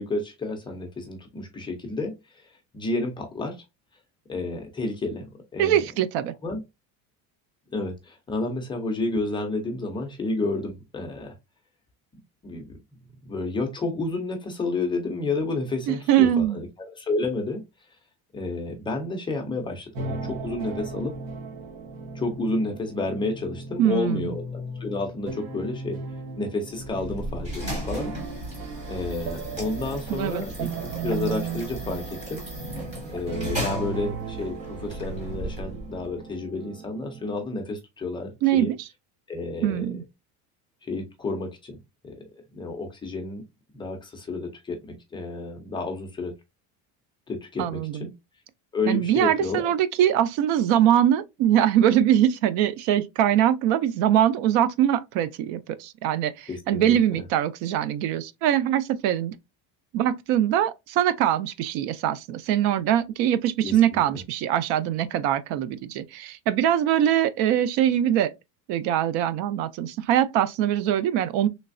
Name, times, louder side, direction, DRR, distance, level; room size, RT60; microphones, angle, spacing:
voice 1, 0.0-3.6 4.3-5.8 6.4-6.6 7.7-11.3 12.4-12.8 13.3-17.6 18.3-21.1 22.1-26.0 26.4-28.1 28.9-32.4 33.1-38.7 39.3-39.9 40.8-41.8 42.0-42.2 42.5-43.4 43.7-46.3 47.3-48.1 48.7-49.7 56.5-57.2 63.6-64.0, left 2 dB, 15° left, 0.4 m, -30 dB
voice 2, 5.6-6.3 15.9-16.6 23.8-24.3 30.1-30.4 38.4-38.8 39.6-40.0 47.6-48.1 48.9-59.3 59.9-68.3 68.7-71.5, right 11 dB, 80° right, 0.6 m, -22 dB
sound 1, 19.9-37.4, right 4 dB, 60° right, 1.0 m, -37 dB
sound 2, 26.8-36.1, equal, 20° right, 1.2 m, -35 dB
3.2 x 3.2 x 2.5 m
cardioid pair, 175°, 39 cm